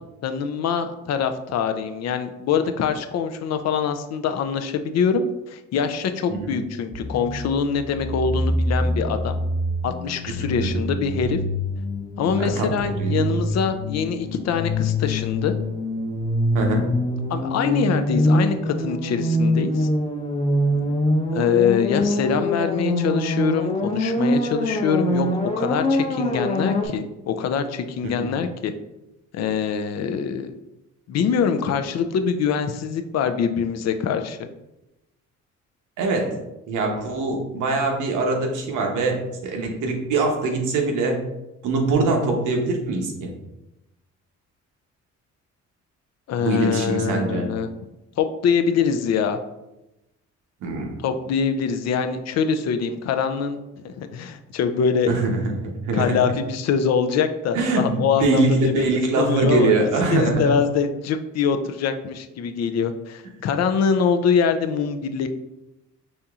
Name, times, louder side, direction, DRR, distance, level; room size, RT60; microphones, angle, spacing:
voice 1, 0.2-9.4 9.8-11.4 12.2-15.5 17.3-19.9 21.3-28.7 29.3-30.5 31.1-34.4 46.3-47.7 48.2-49.4 51.0-53.6 53.8-55.1 55.9-58.8 59.2-59.7 60.1-65.3, left 6 dB, 60° left, 8 dB, 0.4 m, -24 dB
sound 1, 6.9-26.9, left 1 dB, 20° left, 0.7 m, -24 dB
voice 2, 12.4-13.4 16.5-16.8 28.0-28.3 36.0-36.3 36.7-41.2 41.6-43.3 46.4-47.5 50.6-51.0 55.1-56.1 57.5-60.5, right 3 dB, 80° right, 2 dB, 0.9 m, -23 dB
5.1 x 2.8 x 2.4 m, 0.94 s
cardioid pair, 90°, 30 cm